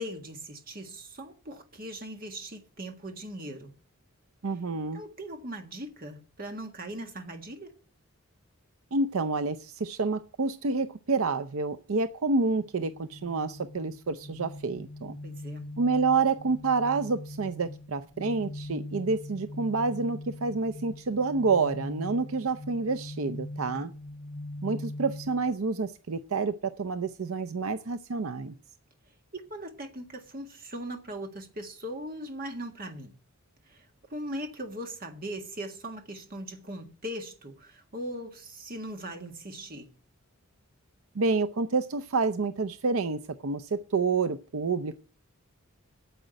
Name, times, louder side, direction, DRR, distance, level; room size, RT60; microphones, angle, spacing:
voice 1, 0.0-3.7 4.9-7.7 15.2-15.7 23.7-23.9 29.3-33.2 33.7-39.9, right 1 dB, 40° right, 1.8 m, -39 dB
voice 2, 4.4-5.0 8.9-15.2 15.8-23.9 24.6-28.5 41.1-45.0, right 4 dB, 75° right, 0.6 m, -28 dB
sound 1, 12.8-25.5, left 1 dB, 20° left, 0.6 m, -42 dB
9.2 x 7.5 x 9.0 m
head